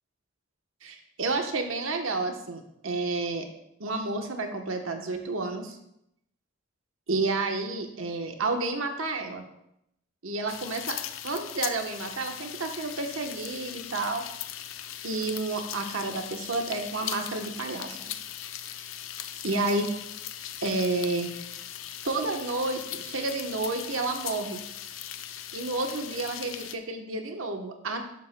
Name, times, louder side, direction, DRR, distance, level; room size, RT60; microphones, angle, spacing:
voice 1, 0.8-3.4 3.8-5.8 7.1-9.4 10.2-11.0 11.2-14.2 15.0-18.1 19.4-19.9 20.6-21.3 22.0-24.6 25.5-28.2, right 3 dB, 85° right, 4 dB, 1.1 m, -30 dB
sound 1, 10.5-26.8, left 10 dB, 85° left, 0.5 m, -39 dB
12.0 x 7.3 x 2.2 m, 0.79 s
head